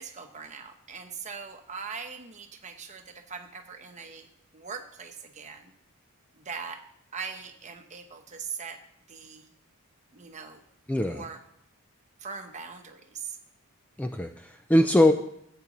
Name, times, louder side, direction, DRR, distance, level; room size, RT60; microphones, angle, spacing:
voice 1, 0.0-4.3 4.5-5.7 6.4-6.8 7.1-8.8 9.1-9.5 10.1-10.6 11.0-11.4 12.2-13.4, right 5 dB, 30° right, 5 dB, 0.9 m, -41 dB
voice 2, 10.9-11.2 14.0-15.1, left 1 dB, 5° left, 6 dB, 0.3 m, -22 dB
14.5 x 8.7 x 3.0 m, 0.73 s
head